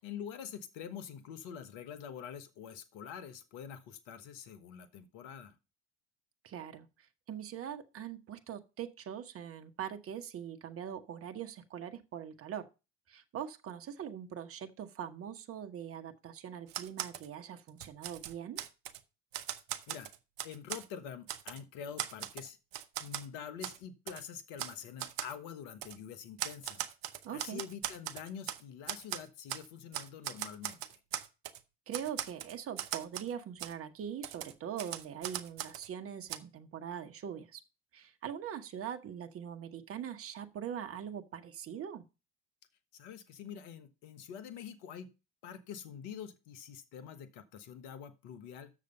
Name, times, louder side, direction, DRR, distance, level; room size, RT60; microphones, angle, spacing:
voice 1, 0.0-5.5 19.9-20.1 20.4-22.6 23.0-26.9 27.3-31.0 42.9-45.1 45.4-48.7, left 8 dB, 70° left, 11 dB, 1.2 m, -46 dB
voice 2, 6.4-6.9 7.3-12.7 13.1-18.6 27.2-27.6 31.9-37.6 37.9-42.0, right 9 dB, 45° right, 6 dB, 1.1 m, -42 dB
Typewriter, 16.7-17.3 17.7-19.0 19.3-20.9 21.3-21.6 22.0-23.3 23.6-23.8 24.1-24.2 24.6-24.7 25.0-25.3 25.8-26.0 26.4-28.6 28.9-29.7 29.9-31.6 31.9-33.3 33.6-33.7 34.2-35.9 36.3-36.4, right 12 dB, 75° right, 0.8 m, -39 dB
7.6 x 6.7 x 5.2 m, 0.29 s
hypercardioid pair, 65°, 32 cm